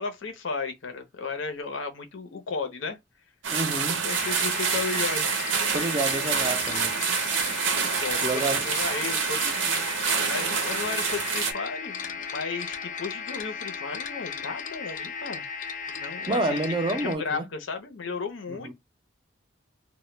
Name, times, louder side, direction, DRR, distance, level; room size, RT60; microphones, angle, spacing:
voice 1, 0.0-3.0 4.0-5.3 7.8-9.8 10.1-15.4 15.9-16.6 16.9-18.7, left 4 dB, 85° left, 0.6 m, -34 dB
sound 1, 3.4-11.5, right 6 dB, 85° right, 0.6 m, -27 dB
voice 2, 3.5-4.1 5.7-7.1 8.2-8.7 16.3-17.4 18.5-18.7, right 2 dB, 25° right, 0.4 m, -29 dB
sound 2, 4.1-17.2, left 6 dB, 40° left, 0.4 m, -36 dB
2.1 x 2.1 x 3.0 m
head